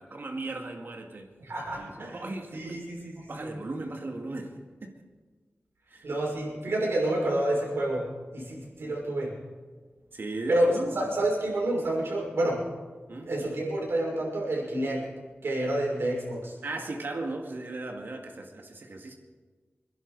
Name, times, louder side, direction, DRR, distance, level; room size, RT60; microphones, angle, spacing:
voice 1, 0.0-1.3 1.8-2.8 3.3-5.0 5.9-6.1 10.1-11.2 13.1-13.3 16.6-19.1, right 2 dB, 60° right, 3 dB, 2.2 m, -37 dB
voice 2, 1.4-2.2 2.5-3.5 6.0-8.0 8.3-9.3 10.5-12.6 13.2-15.1 15.4-16.6, right 1 dB, 80° right, -3 dB, 5.8 m, -29 dB
26.0 x 11.0 x 4.9 m, 1.4 s
wide cardioid pair, 105°, 4 cm